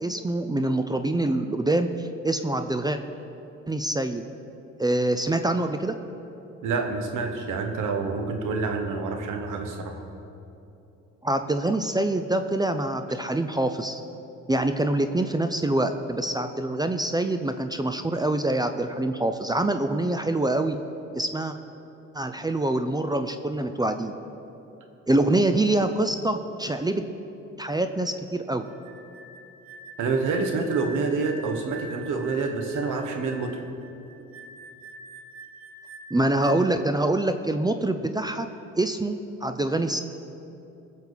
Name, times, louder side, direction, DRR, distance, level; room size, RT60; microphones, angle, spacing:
voice 1, 0.0-3.0 3.7-4.2 4.8-5.9 11.2-14.0 14.5-20.8 21.1-21.5 22.1-24.1 25.1-27.0 27.6-28.7 36.1-38.5 38.8-40.0, right 2 dB, 15° right, 8 dB, 0.6 m, -25 dB
voice 2, 6.6-10.0 30.0-33.7, right 4 dB, 85° right, 4 dB, 1.4 m, -27 dB
sound 1, 28.7-36.9, right 2 dB, 65° right, 1.1 m, -45 dB
21.0 x 7.3 x 4.1 m, 2.8 s
cardioid pair, 90°, 30 cm